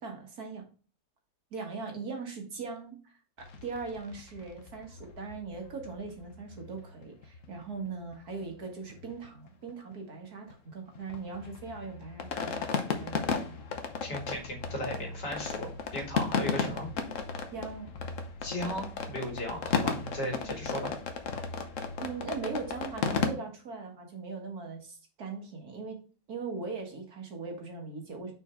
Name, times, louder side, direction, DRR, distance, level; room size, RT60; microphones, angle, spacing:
voice 1, 0.0-0.7 1.5-13.6 17.5-17.9 22.0-26.0 26.3-28.3, right 4 dB, 65° right, 2 dB, 2.0 m, -40 dB
sound 1, 3.4-7.9 8.1-8.2 8.4-8.6 8.9-9.9 10.2-23.3, left 5 dB, 55° left, 1.1 m, -35 dB
voice 2, 14.0-16.9 18.4-20.9, equal, 90° left, 1 dB, 2.9 m, -36 dB
5.8 x 4.5 x 4.3 m, 0.38 s
omnidirectional pair, 1.8 m